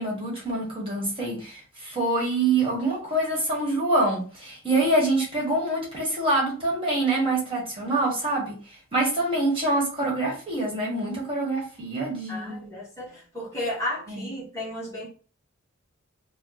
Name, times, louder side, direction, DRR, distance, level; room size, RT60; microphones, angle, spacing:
voice 1, 0.0-8.6 8.9-12.6 14.1-14.2, right 2 dB, 25° right, -3 dB, 1.2 m, -25 dB
voice 2, 12.3-15.1, left 1 dB, 15° left, -6 dB, 1.0 m, -33 dB
2.9 x 2.1 x 3.8 m, 0.39 s
head